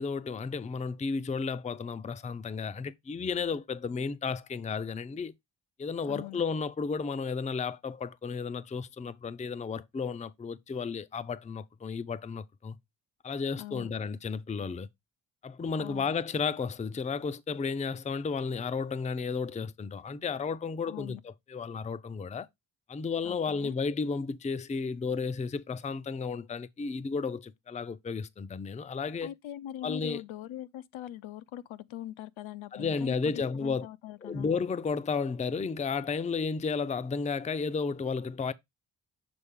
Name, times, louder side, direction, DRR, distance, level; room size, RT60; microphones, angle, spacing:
voice 1, 0.0-5.3 5.8-12.8 13.2-14.9 15.4-22.5 22.9-29.3 29.8-30.2 32.7-33.9 34.2-38.5, left 5 dB, 15° left, 0.4 m, -33 dB
voice 2, 6.1-6.4 13.6-13.9 15.8-16.1 20.9-21.2 23.2-23.7 29.2-34.5, left 13 dB, 75° left, 0.6 m, -42 dB
6.9 x 3.9 x 3.6 m
cardioid pair, 75°, 48 cm